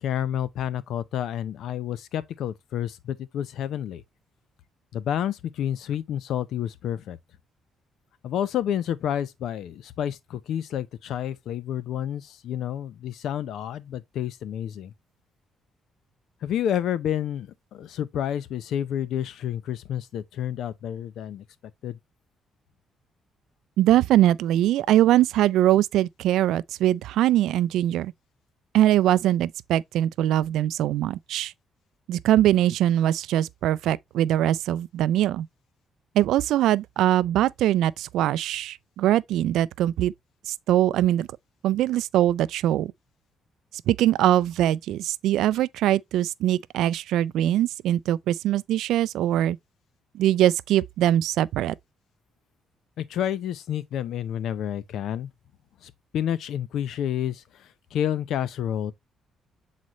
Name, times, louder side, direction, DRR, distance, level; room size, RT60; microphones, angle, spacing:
voice 1, 0.0-4.0 4.9-7.2 8.2-14.9 16.4-21.4 21.8-22.0 53.0-55.3 55.8-58.9, left 10 dB, 75° left, 0.6 m, -29 dB
voice 2, 23.8-28.1 28.7-31.5 32.1-35.5 36.2-40.1 40.5-41.3 41.6-42.9 43.9-49.6 50.1-51.7, right 13 dB, 85° right, 0.3 m, -22 dB
7.6 x 4.1 x 3.0 m
cardioid pair, 90°, 0 cm